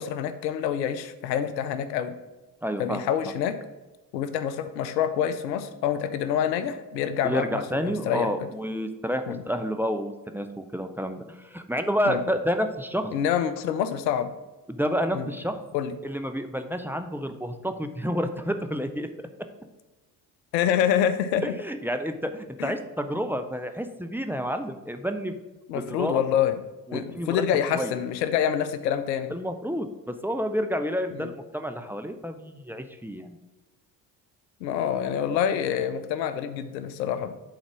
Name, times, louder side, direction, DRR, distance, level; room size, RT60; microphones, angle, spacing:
voice 1, 0.0-2.1 2.8-3.6 4.1-8.3 9.3-9.4 12.1-12.2 13.1-14.3 15.1-15.3 15.7-15.9 20.5-21.4 22.6-22.7 25.7-26.6 26.9-29.3 31.1-31.3 34.6-37.3, left 9 dB, 85° left, 11 dB, 0.7 m, -26 dB
voice 2, 2.6-3.0 7.2-13.1 14.7-15.6 16.0-19.1 21.4-25.3 25.7-26.2 26.9-27.4 27.7-27.9 29.3-33.4, equal, 5° right, 7 dB, 0.7 m, -29 dB
7.8 x 4.1 x 6.0 m, 1.1 s
hypercardioid pair, 55°, 49 cm